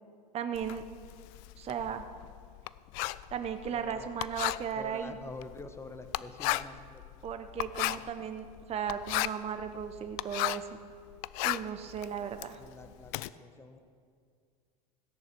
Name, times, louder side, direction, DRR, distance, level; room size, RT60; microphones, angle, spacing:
voice 1, 0.3-0.8 1.6-2.0 3.3-5.2 7.2-10.8 11.4-12.6, right 8 dB, 30° right, 8 dB, 0.9 m, -36 dB
Writing, 0.5-10.8 11.1-13.3, left 19 dB, 60° left, 0.5 m, -35 dB
voice 2, 3.7-4.1 4.8-7.0 7.7-8.1 12.6-13.8, left 3 dB, 10° left, 9 dB, 1.2 m, -47 dB
16.5 x 10.5 x 6.1 m, 2.2 s
hypercardioid pair, 95°, 21 cm